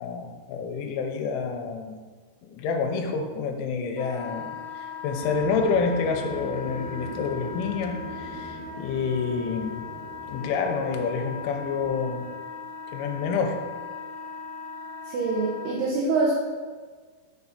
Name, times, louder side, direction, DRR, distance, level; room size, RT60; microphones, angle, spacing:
voice 1, 0.0-1.9 2.4-9.8 10.3-12.3 12.9-13.6, left 5 dB, 85° left, 3 dB, 3.1 m, -28 dB
Wind instrument woodwind instrument, 4.0-15.7, left 6 dB, 45° left, 2.7 m, -39 dB
sound 1, 5.2-11.9, right 2 dB, 55° right, 2.6 m, -41 dB
voice 2, 15.1-16.5, right 3 dB, 75° right, -4 dB, 2.5 m, -25 dB
7.2 x 5.9 x 4.1 m, 1.5 s
omnidirectional pair, 5.6 m